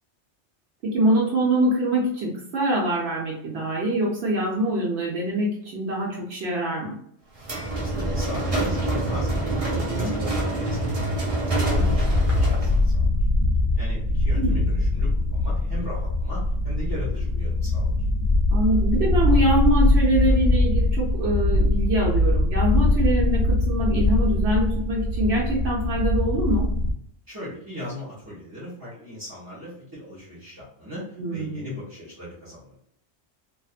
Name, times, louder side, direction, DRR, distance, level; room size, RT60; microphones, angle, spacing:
voice 1, 0.8-7.0 9.7-10.1 14.4-14.7 18.5-26.7 31.2-31.7, right 1 dB, 70° right, -4 dB, 1.0 m, -24 dB
sound 1, 7.4-12.9, right 2 dB, 40° right, 0.6 m, -26 dB
voice 2, 7.8-9.4 9.9-13.1 13.7-17.9 27.3-32.8, left 1 dB, 20° right, -11 dB, 1.0 m, -38 dB
sound 2, 11.7-26.9, left 2 dB, 70° left, 0.8 m, -22 dB
2.5 x 2.4 x 2.4 m, 0.70 s
omnidirectional pair, 1.2 m